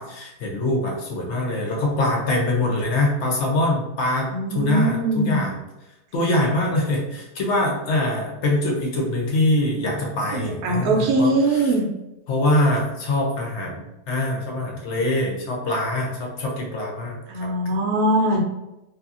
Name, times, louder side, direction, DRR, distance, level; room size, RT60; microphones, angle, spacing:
voice 1, 0.0-5.6 6.1-11.7 12.3-17.5, left 1 dB, 55° left, -1 dB, 0.8 m, -24 dB
voice 2, 4.3-5.4 10.3-11.9 17.3-18.4, right 1 dB, 75° right, 0 dB, 1.0 m, -21 dB
2.7 x 2.6 x 2.4 m, 0.94 s
omnidirectional pair, 1.7 m